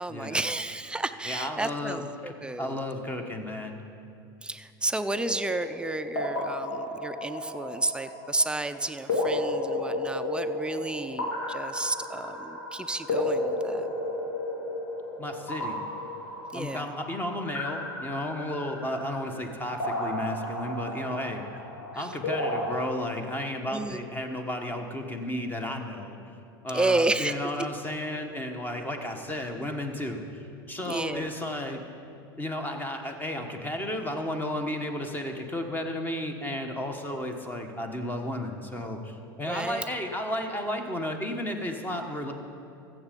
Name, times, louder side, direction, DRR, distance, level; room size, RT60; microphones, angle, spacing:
voice 1, 0.0-2.8 4.4-13.9 16.5-16.9 21.9-22.1 23.7-24.0 26.7-27.3 30.9-31.3 39.5-39.9, right 2 dB, 10° right, 10 dB, 0.5 m, -31 dB
voice 2, 1.2-3.8 15.2-15.8 16.5-21.4 21.9-26.2 26.6-31.8 32.4-42.3, left 1 dB, 15° left, 5 dB, 1.3 m, -33 dB
sound 1, 5.1-22.8, left 1 dB, 75° left, 2.8 m, -33 dB
14.5 x 7.5 x 5.3 m, 2.6 s
hypercardioid pair, 90°, 12 cm